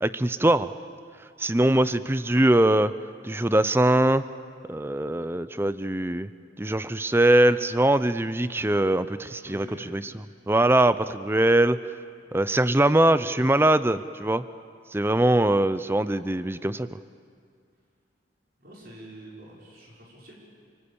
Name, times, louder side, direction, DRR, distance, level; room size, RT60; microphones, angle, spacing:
voice 1, 0.0-0.7 1.4-2.9 3.2-4.3 4.7-6.3 6.6-10.1 10.5-11.8 12.3-14.4 14.9-16.9, right 1 dB, 10° right, 14 dB, 0.6 m, -22 dB
voice 2, 9.2-10.1 13.1-13.4 15.6-15.9 18.6-20.4, right 1 dB, 50° right, -4 dB, 5.7 m, -46 dB
28.5 x 19.5 x 8.7 m, 2.2 s
head